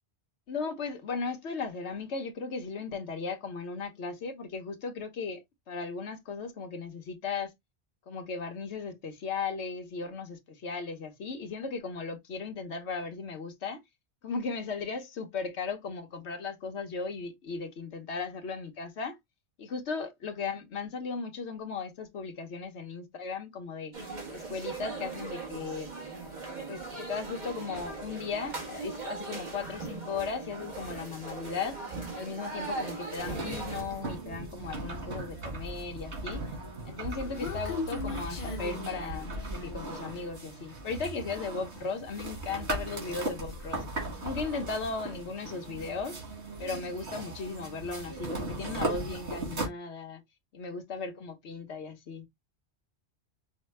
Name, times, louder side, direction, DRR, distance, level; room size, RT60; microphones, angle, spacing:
voice 1, 0.5-5.4 5.7-7.5 8.1-13.8 14.2-19.2 19.6-24.0 24.3-25.9 26.7-31.8 32.1-36.4 36.8-43.8 44.2-46.2 46.6-50.2 50.5-52.3, left 4 dB, 80° left, 1.2 m, -36 dB
sound 1, 23.9-33.8, right 3 dB, 45° right, 1.2 m, -39 dB
sound 2, 33.2-49.7, right 2 dB, 85° right, 2.1 m, -38 dB
Human voice, 36.8-39.8, left 4 dB, 50° left, 0.8 m, -38 dB
5.5 x 2.2 x 3.2 m
omnidirectional pair, 1.1 m